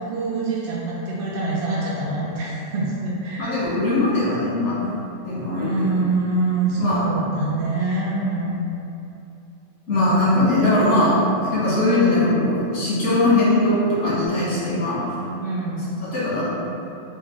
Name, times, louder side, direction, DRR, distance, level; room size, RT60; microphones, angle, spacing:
voice 1, 0.0-3.5 5.5-8.6 9.9-10.2 15.4-16.0, right 2 dB, 60° right, -6 dB, 0.7 m, -25 dB
voice 2, 3.4-4.8 5.2-6.1 6.8-7.0 9.9-15.0 16.1-16.4, left 1 dB, 65° left, -9 dB, 1.5 m, -20 dB
3.2 x 2.6 x 3.7 m, 2.7 s
omnidirectional pair, 1.3 m